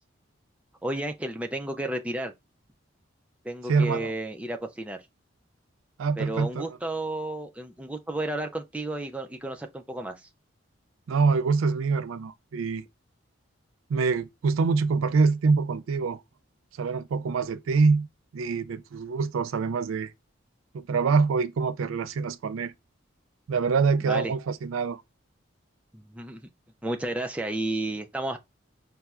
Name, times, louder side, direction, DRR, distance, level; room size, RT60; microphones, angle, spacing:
voice 1, 0.8-2.3 3.4-5.0 6.2-10.3 24.0-24.3 25.9-26.5 26.8-28.4, right 1 dB, 5° right, 0.3 m, -32 dB
voice 2, 3.7-4.1 6.0-6.8 11.1-12.8 13.9-16.2 16.8-18.1 18.3-20.1 20.7-22.7 23.5-25.0, right 4 dB, 85° right, 0.4 m, -25 dB
5.5 x 2.0 x 2.3 m
head